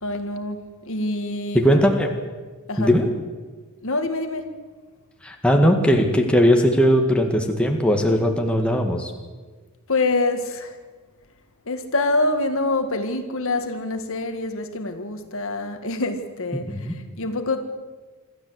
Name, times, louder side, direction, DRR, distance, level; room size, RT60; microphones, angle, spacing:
voice 1, 0.0-1.8 2.7-2.9 3.8-4.5 9.9-10.8 11.7-17.6, left 2 dB, 65° left, 7 dB, 1.8 m, -26 dB
voice 2, 1.5-2.2 2.8-3.1 5.2-9.1 16.7-17.0, equal, 5° left, 2 dB, 1.9 m, -19 dB
26.0 x 13.0 x 8.1 m, 1.4 s
head